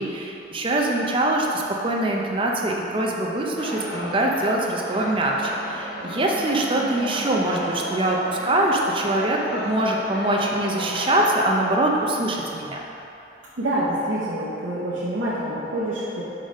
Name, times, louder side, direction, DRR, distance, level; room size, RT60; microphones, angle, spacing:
voice 1, 0.0-12.8, right 1 dB, 30° right, -1 dB, 0.5 m, -23 dB
sound 1, 3.6-11.3, equal, 60° left, 0.8 m, -33 dB
voice 2, 13.6-16.2, right 1 dB, 85° right, -9 dB, 0.9 m, -26 dB
5.2 x 4.0 x 5.1 m, 2.9 s
head